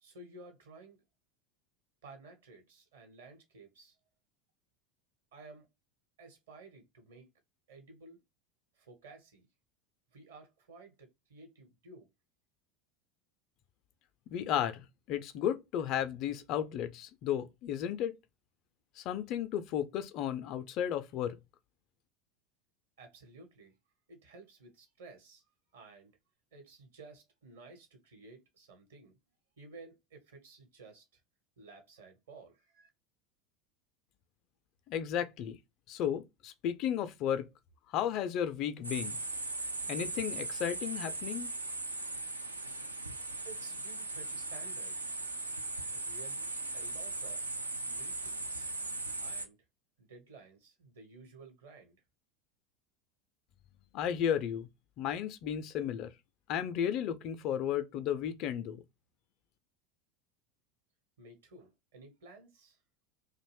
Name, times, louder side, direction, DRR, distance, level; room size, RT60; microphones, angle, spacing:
voice 1, 0.0-1.0 2.0-4.0 5.3-5.7 6.2-7.3 7.7-8.2 8.7-9.5 10.1-12.1 23.0-23.8 24.1-25.4 25.7-26.2 26.5-29.2 29.6-31.2 31.6-32.9 43.4-45.1 45.9-47.6 47.8-48.7 49.2-49.6 50.0-52.0 61.2-62.8, right 3 dB, 65° right, 1.0 m, -54 dB
voice 2, 14.3-18.2 19.0-21.4 34.9-35.6 35.9-37.5 37.9-39.2 39.9-41.5 53.9-54.7 55.0-56.1 56.5-58.8, left 9 dB, 45° left, 0.3 m, -34 dB
sound 1, 38.8-49.5, right 2 dB, 85° right, 0.3 m, -38 dB
2.5 x 2.1 x 3.2 m
figure-of-eight pair, 75°, 0 cm